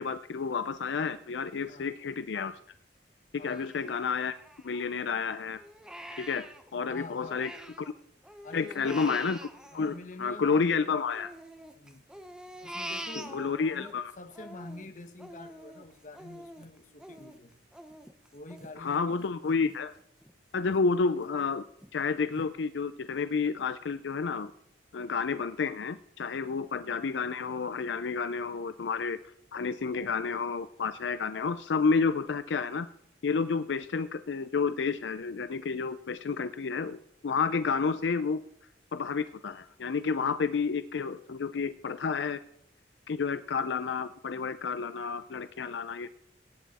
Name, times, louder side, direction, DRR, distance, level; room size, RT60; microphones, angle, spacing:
voice 1, 0.0-2.5 3.3-4.3 4.6-5.6 6.2-7.5 7.8-7.9 8.5-9.4 9.7-11.3 13.2-14.1 18.8-19.9 20.5-21.6 21.9-24.5 24.9-29.2 29.5-32.9 33.2-38.4 38.9-42.4 43.1-46.1, left 5 dB, 80° left, 12 dB, 0.5 m, -30 dB
voice 2, 3.4-3.7 6.9-7.5 8.4-9.3 9.7-11.0 11.7-12.1 12.6-17.6 18.3-19.7, left 2 dB, 45° left, 8 dB, 1.1 m, -47 dB
Crying sobbing, 3.5-5.1 5.5-7.9 8.2-10.7 11.1-13.9 14.3-19.8 20.2-20.3 20.7-21.3 21.8-21.9 22.4-22.5, right 1 dB, 5° right, 0.8 m, -45 dB
17.5 x 9.2 x 4.2 m, 0.73 s
head